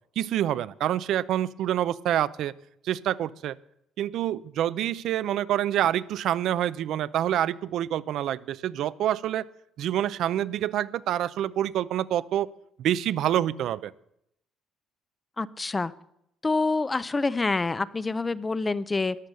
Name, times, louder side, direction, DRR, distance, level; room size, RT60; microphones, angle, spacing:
voice 1, 0.2-2.5 2.8-3.5 4.0-9.5 9.8-12.5 12.8-13.9, right 11 dB, 60° right, 17 dB, 0.5 m, -27 dB
voice 2, 15.4-15.9 16.4-19.2, left 3 dB, 15° left, 17 dB, 0.4 m, -27 dB
14.0 x 10.5 x 6.8 m, 0.77 s
cardioid pair, 140°, 0 cm